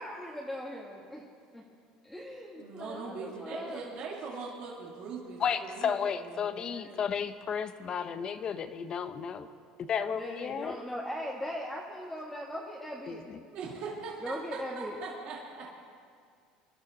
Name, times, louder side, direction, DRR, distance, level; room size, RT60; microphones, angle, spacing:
voice 1, 0.0-1.2 1.5-1.6 2.0-3.8 6.4-7.1 10.0-13.2 14.2-15.0, equal, ahead, -4 dB, 1.7 m, -40 dB
voice 2, 2.6-6.5 13.5-15.7, right 4 dB, 55° right, -4 dB, 2.7 m, -41 dB
voice 3, 5.4-9.5 9.8-10.8 13.1-13.4, left 7 dB, 35° left, 11 dB, 0.9 m, -33 dB
24.5 x 12.5 x 4.0 m, 2.2 s
supercardioid pair, 120°, 2 cm